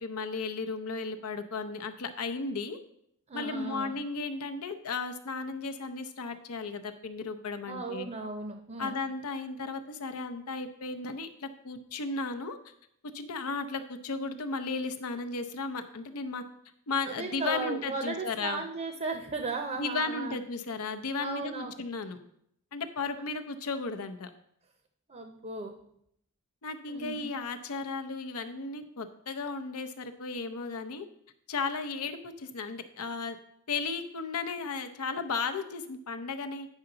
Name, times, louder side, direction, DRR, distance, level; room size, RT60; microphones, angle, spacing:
voice 1, 0.0-2.8 3.3-8.1 8.8-12.6 13.1-16.4 16.9-18.6 19.8-22.2 22.7-24.3 26.6-31.1 31.5-33.4 33.7-36.7, left 4 dB, 90° left, 8 dB, 0.7 m, -35 dB
voice 2, 3.3-3.9 7.7-9.0 17.0-20.4 21.2-21.7 23.1-23.2 25.1-25.7 26.9-27.3, right 3 dB, 30° right, 5 dB, 0.6 m, -36 dB
9.0 x 5.7 x 3.9 m, 0.73 s
head